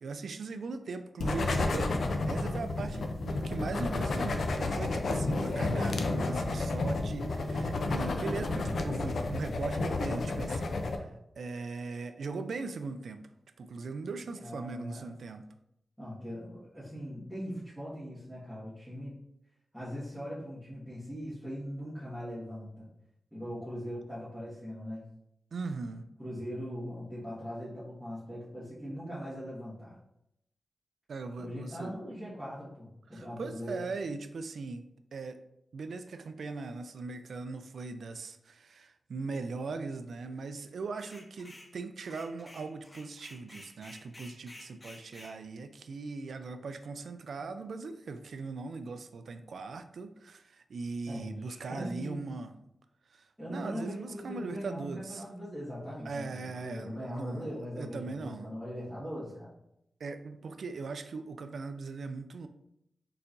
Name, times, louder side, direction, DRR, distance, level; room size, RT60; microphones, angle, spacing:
voice 1, 0.0-11.1 11.4-13.3 13.6-15.5 25.5-26.0 31.1-32.0 33.1-35.4 35.7-52.5 53.1-55.2 56.1-58.5 60.0-62.5, right 4 dB, 85° right, 9 dB, 0.3 m, -39 dB
sound 1, 1.2-11.0, left 2 dB, 75° left, 0.5 m, -31 dB
voice 2, 14.3-15.1 16.0-19.2 19.7-22.9 23.3-25.0 26.2-30.0 31.4-33.8 51.1-52.3 53.4-59.5, equal, 5° left, -11 dB, 1.6 m, -40 dB
sound 2, 41.0-41.7 42.0-45.4, left 1 dB, 20° left, 0.6 m, -51 dB
4.4 x 4.0 x 2.6 m, 0.79 s
wide cardioid pair, 125°, 0 cm